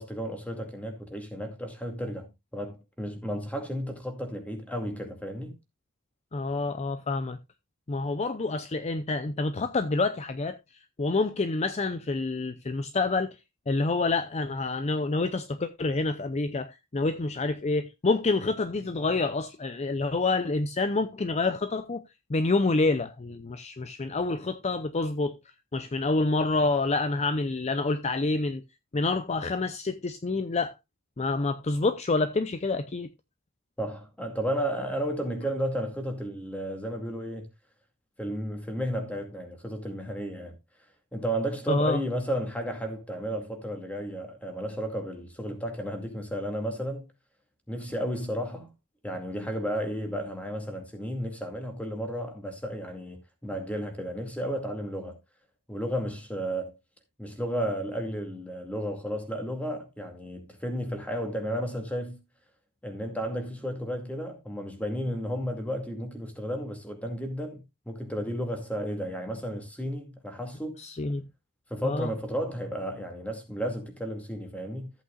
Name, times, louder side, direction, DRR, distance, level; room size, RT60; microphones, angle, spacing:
voice 1, 0.0-5.6 33.8-37.5 38.2-40.6 41.1-47.1 47.7-48.7 49.0-55.2 55.7-56.7 57.2-62.2 62.8-70.8 71.7-74.9, equal, 5° left, 2.2 m, -33 dB
voice 2, 6.3-7.4 7.9-10.6 11.0-13.4 13.7-22.0 22.3-25.3 25.7-28.6 28.9-30.7 31.2-33.1 41.7-42.0 70.8-71.2 71.8-72.1, left 3 dB, 30° left, 0.6 m, -27 dB
14.0 x 8.3 x 2.4 m
head